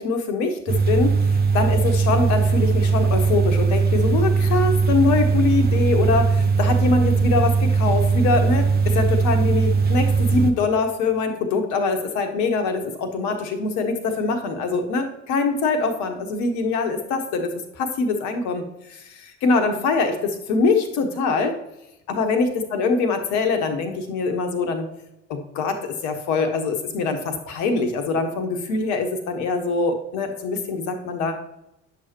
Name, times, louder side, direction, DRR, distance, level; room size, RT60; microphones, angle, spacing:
voice 1, 0.0-17.5 17.8-21.6 22.1-24.9 25.3-31.4, left 4 dB, 50° left, 6 dB, 1.2 m, -23 dB
sound 1, 0.7-10.5, right 5 dB, 25° right, 0.8 m, -19 dB
9.8 x 6.4 x 2.9 m, 0.88 s
figure-of-eight pair, 60°, 37 cm